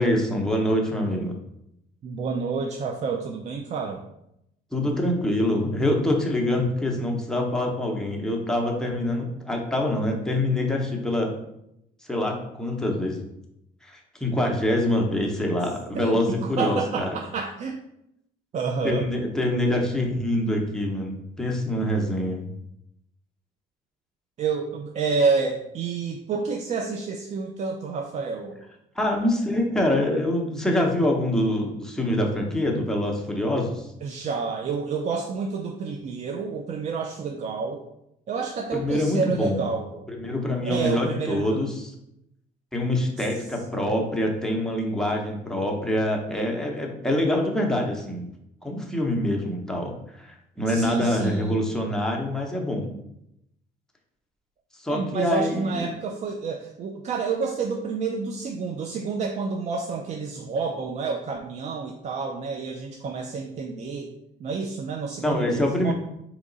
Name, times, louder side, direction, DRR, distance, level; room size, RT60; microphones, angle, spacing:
voice 1, 0.0-1.3 4.7-11.3 12.0-13.3 13.8-17.1 18.8-22.5 28.9-33.9 38.7-39.6 40.1-41.9 42.7-48.3 48.6-52.9 54.7-55.9 65.2-65.9, left 1 dB, 5° left, 0 dB, 0.8 m, -25 dB
voice 2, 2.0-4.0 16.0-16.2 16.6-17.8 18.5-19.1 24.4-28.6 34.0-37.8 38.3-39.9 40.7-41.6 50.7-51.6 54.9-64.1 64.4-65.9, right 5 dB, 45° right, 2 dB, 0.4 m, -29 dB
3.6 x 2.9 x 3.9 m, 0.81 s
cardioid pair, 110°, 17 cm